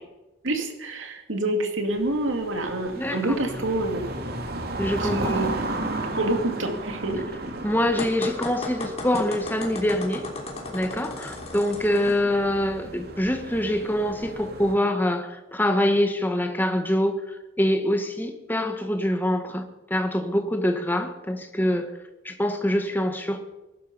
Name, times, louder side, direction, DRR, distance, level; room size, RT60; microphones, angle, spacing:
voice 1, 0.4-4.1 5.0-5.5 6.1-7.2, right 2 dB, 70° right, 4 dB, 2.6 m, -27 dB
sound 1, 1.9-14.7, right 2 dB, 50° right, 2.6 m, -35 dB
voice 2, 2.9-3.4 4.8-5.4 7.6-10.2 10.7-19.6 19.9-21.9 22.2-23.5, left 1 dB, 10° left, 6 dB, 1.5 m, -25 dB
sound 2, 8.0-12.2, left 2 dB, 30° left, 3.3 m, -35 dB
21.0 x 12.0 x 5.6 m, 1.0 s
head